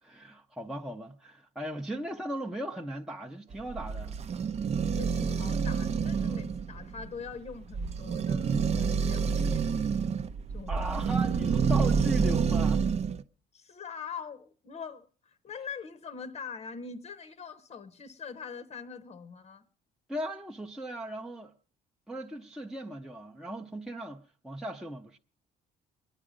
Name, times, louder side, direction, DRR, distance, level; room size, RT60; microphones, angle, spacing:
voice 1, 0.0-4.2 6.2-6.4 10.7-12.9 20.1-21.5 22.1-25.2, right 1 dB, 5° right, 0.7 m, -37 dB
sound 1, 3.5-13.2, right 5 dB, 40° right, 0.6 m, -28 dB
voice 2, 4.8-10.2 10.5-10.8 13.5-19.6, left 6 dB, 40° left, 0.9 m, -43 dB
22.5 x 9.9 x 5.0 m
cardioid pair, 110°, 17 cm